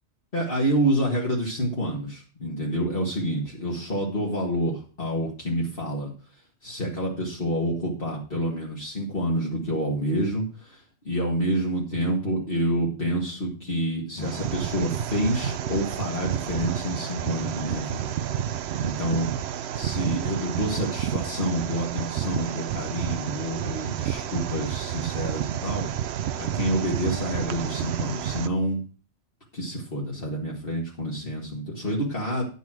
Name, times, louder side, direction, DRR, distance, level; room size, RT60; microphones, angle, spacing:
voice 1, 0.3-6.1 6.6-18.1 18.8-19.3 19.7-25.9 26.4-28.8 29.5-32.4, equal, 50° left, -3 dB, 2.1 m, -28 dB
sound 1, 14.2-28.5, right 10 dB, 65° right, 0.8 m, -30 dB
10.5 x 5.4 x 6.1 m, 0.37 s
omnidirectional pair, 1.2 m